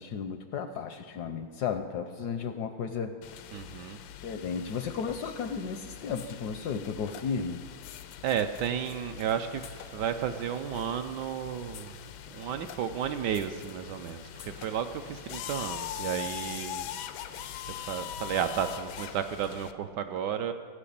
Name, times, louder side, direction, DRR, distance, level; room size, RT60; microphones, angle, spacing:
voice 1, 0.0-3.2 4.2-7.6, left 6 dB, 70° left, 8 dB, 1.0 m, -34 dB
sound 1, 3.2-19.7, left 10 dB, 85° left, 1.4 m, -42 dB
voice 2, 3.5-4.0 8.2-12.0 12.3-16.9 17.7-20.5, right 8 dB, 70° right, 7 dB, 1.1 m, -33 dB
16.0 x 5.8 x 8.5 m, 2.2 s
omnidirectional pair, 2.1 m